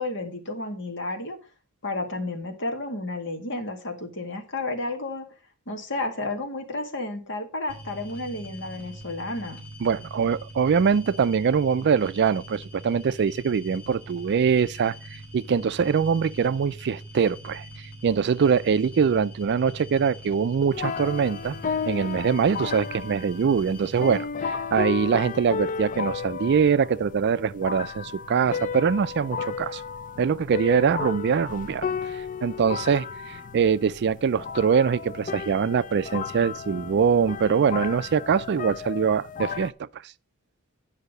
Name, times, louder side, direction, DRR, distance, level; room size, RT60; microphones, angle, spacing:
voice 1, 0.0-1.4 1.8-5.3 5.7-9.6, left 2 dB, 55° left, 2.1 m, -32 dB
sound 1, 7.7-24.2, right 1 dB, 5° left, 3.4 m, -43 dB
voice 2, 9.8-21.6 21.9-29.8 30.2-31.8 32.1-39.7, right 6 dB, 50° right, 0.4 m, -23 dB
sound 2, 20.7-39.7, left 6 dB, 35° left, 0.4 m, -33 dB
10.0 x 5.6 x 5.1 m
head